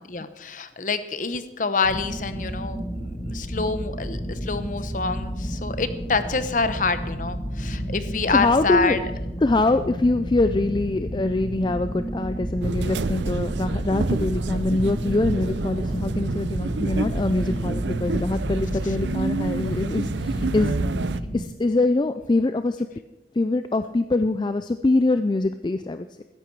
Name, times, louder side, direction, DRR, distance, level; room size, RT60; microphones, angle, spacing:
voice 1, 0.0-9.0, left 4 dB, 45° left, 11 dB, 0.9 m, -27 dB
sound 1, 1.8-21.4, equal, 15° right, 5.1 m, -31 dB
voice 2, 8.3-9.0 9.4-20.8 21.3-22.9 23.3-26.2, left 2 dB, 25° left, 10 dB, 0.4 m, -24 dB
sound 2, 12.6-21.2, right 3 dB, 80° right, 0.6 m, -28 dB
16.0 x 13.5 x 4.7 m, 1.1 s
head